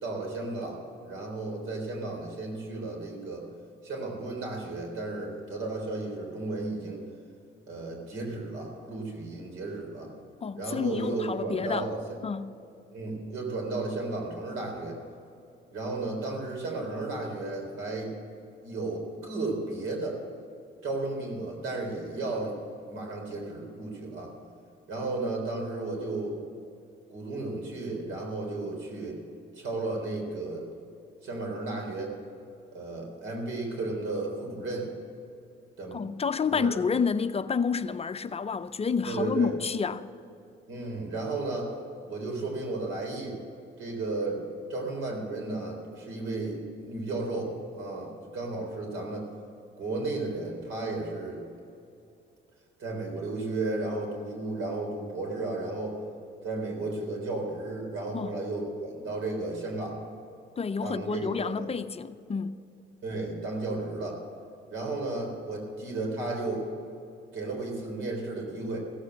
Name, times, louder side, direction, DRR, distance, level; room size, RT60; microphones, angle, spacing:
voice 1, 0.0-3.4 3.8-7.0 7.7-10.1 10.6-12.0 12.9-15.0 15.7-18.1 18.6-20.2 20.8-22.6 22.9-24.3 24.9-26.4 27.1-29.2 29.6-30.7 31.2-32.2 32.7-34.9 35.8-36.0 36.5-36.7 39.0-39.5 40.7-41.7 42.1-43.4 43.8-44.4 44.7-46.6 46.9-49.3 49.8-51.4 52.8-56.0 56.4-60.0 60.8-61.7 63.0-64.2 64.7-66.7 67.3-68.8, right 2 dB, 85° right, 3.8 m, -34 dB
voice 2, 10.4-11.9 12.2-12.5 35.9-40.1 58.1-58.3 60.6-62.5, left 5 dB, 30° left, 0.5 m, -29 dB
16.0 x 8.2 x 7.8 m
cardioid pair, 90°, 20 cm